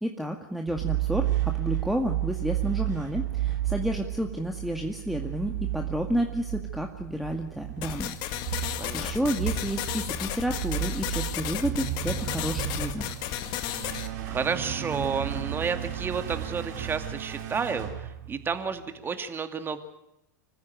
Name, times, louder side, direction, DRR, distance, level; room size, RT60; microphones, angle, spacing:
voice 1, 0.0-8.2 8.5-13.1, equal, ahead, 3 dB, 2.0 m, -31 dB
sound 1, 0.7-18.8, right 13 dB, 65° right, 3.5 m, -33 dB
sound 2, 7.8-14.1, left 13 dB, 50° left, 1.9 m, -33 dB
voice 2, 8.8-9.3 14.3-19.8, right 5 dB, 20° right, 8 dB, 2.4 m, -31 dB
26.0 x 15.0 x 9.2 m, 0.88 s
hypercardioid pair, 100°, 10 cm